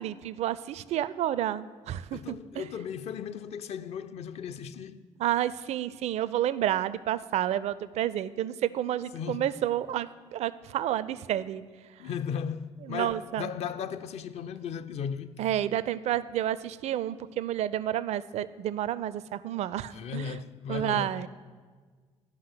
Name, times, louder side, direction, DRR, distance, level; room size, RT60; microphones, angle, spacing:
voice 1, 0.0-2.6 5.2-11.6 12.9-13.5 15.4-20.4 20.7-21.3, right 12 dB, 45° right, 0.4 m, -30 dB
voice 2, 2.1-5.0 9.1-9.4 12.0-15.4 19.9-21.2, left 7 dB, 45° left, 0.5 m, -36 dB
12.0 x 5.6 x 6.6 m
figure-of-eight pair, 50°, 16 cm